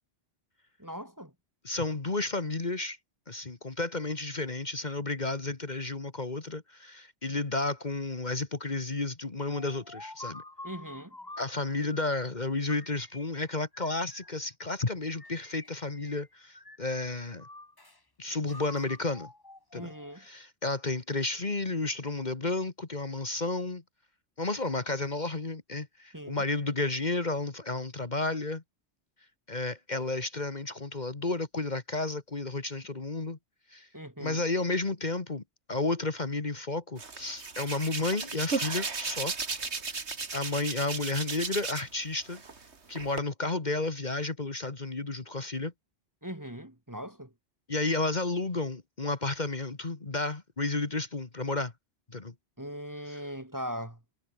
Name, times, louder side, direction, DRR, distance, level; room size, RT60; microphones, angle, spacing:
voice 1, 0.8-1.3 10.6-11.2 19.7-20.3 26.1-26.4 33.9-34.4 46.2-47.3 52.6-54.0, equal, 15° right, 2.0 m, -40 dB
voice 2, 1.6-3.0 3.3-10.4 11.4-17.5 18.2-19.3 19.7-19.9 20.2-23.8 24.4-28.6 29.5-33.4 33.7-33.9 34.2-35.4 35.7-39.3 39.9-40.0 40.3-42.4 42.9-45.7 47.7-51.7 52.1-52.3 53.1-53.2, left 3 dB, 40° left, 1.8 m, -32 dB
sound 1, 9.5-12.3 12.7-14.5 15.1-16.3 16.5-18.0 18.5-20.3, left 2 dB, 20° left, 1.6 m, -48 dB
Hands, 37.0-42.0 42.3-43.2, right 4 dB, 70° right, 2.5 m, -35 dB
omnidirectional pair, 1.2 m